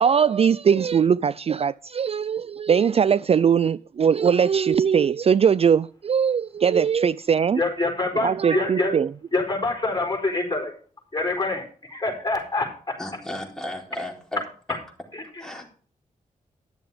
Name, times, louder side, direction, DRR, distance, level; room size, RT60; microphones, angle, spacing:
voice 1, 0.0-7.6 8.2-9.1, right 7 dB, 45° right, 0.4 m, -20 dB
voice 2, 7.5-8.9 9.3-10.7 11.1-12.7 15.1-15.2, left 3 dB, 25° left, 4.5 m, -25 dB
voice 3, 13.0-14.4 14.7-14.8 15.4-15.7, left 1 dB, 5° left, 4.2 m, -34 dB
11.5 x 6.9 x 5.0 m
cardioid pair, 65°, 14 cm